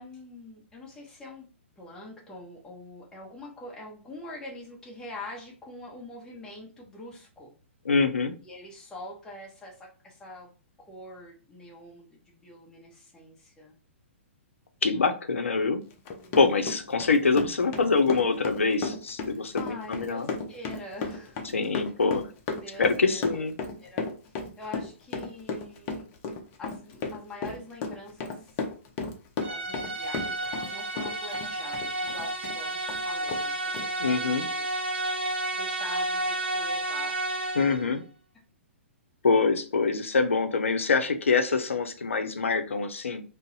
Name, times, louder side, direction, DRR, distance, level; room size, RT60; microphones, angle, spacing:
voice 1, 0.0-1.5 1.8-7.5 8.4-10.5 10.8-13.7 14.9-15.1 16.1-16.7 19.3-21.9 22.6-23.5 23.8-24.1 24.6-26.1 26.6-28.6 29.4-34.7 35.5-37.2 38.3-38.4, left 1 dB, 10° left, -3 dB, 0.9 m, -45 dB
voice 2, 7.9-8.3 14.8-15.8 16.3-20.3 21.5-22.3 22.8-23.5 34.0-34.5 37.6-38.0 39.2-43.2, left 4 dB, 80° left, 7 dB, 0.5 m, -25 dB
Run, 15.9-30.7 31.0-32.6 32.9-33.0 33.3-33.4 33.7-33.9, left 4 dB, 35° left, 0.6 m, -34 dB
sound 1, 29.4-37.9, right 1 dB, 60° right, 0.7 m, -31 dB
2.6 x 2.0 x 3.9 m, 0.36 s
figure-of-eight pair, 120°, 7 cm